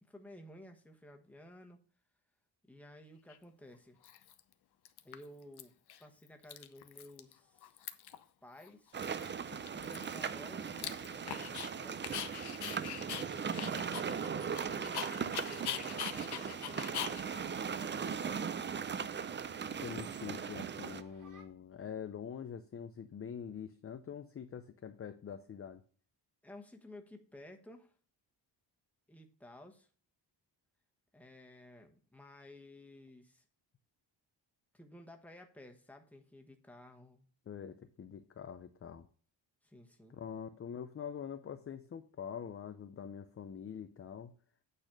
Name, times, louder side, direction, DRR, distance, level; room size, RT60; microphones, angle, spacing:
voice 1, 0.0-1.8 2.7-4.0 5.0-5.7 6.0-7.9 8.4-9.0 9.7-12.1 12.4-18.2 26.4-27.9 29.1-29.9 31.1-33.4 34.7-37.3 39.6-40.2, left 1 dB, 5° left, 3 dB, 1.2 m, -55 dB
Dog, 3.3-3.4 4.0-4.5 4.8-5.6 5.9-6.0 6.3-7.3 7.6-8.2 8.6-8.7 9.0-11.7 12.0-18.7, left 10 dB, 60° left, 0.8 m, -43 dB
sound 1, 8.9-21.0, right 6 dB, 25° right, 0.4 m, -38 dB
sound 2, 12.1-21.4, right 4 dB, 45° right, 1.6 m, -59 dB
voice 2, 19.8-25.8 37.5-39.1 40.1-44.3, left 7 dB, 30° left, 9 dB, 0.5 m, -45 dB
9.0 x 4.2 x 6.5 m, 0.43 s
wide cardioid pair, 145°, 45 cm